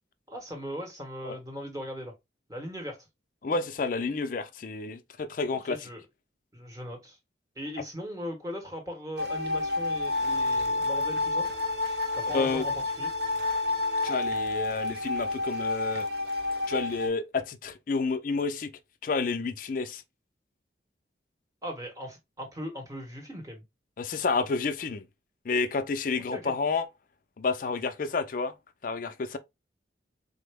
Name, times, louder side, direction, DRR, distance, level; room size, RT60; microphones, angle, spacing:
voice 1, 0.3-2.1 2.5-3.0 5.5-6.0 6.5-7.2 7.6-11.5 12.2-13.1 21.6-23.6 26.3-26.5, equal, 15° right, 0.9 m, -39 dB
voice 2, 3.4-5.9 12.3-12.6 14.0-16.1 16.7-18.7 19.0-20.0 24.0-25.1 25.4-26.9 27.4-28.5 28.8-29.4, left 4 dB, 45° left, 0.4 m, -30 dB
sound 1, 9.2-17.1, left 2 dB, 60° right, 0.6 m, -29 dB
3.8 x 2.0 x 3.3 m
head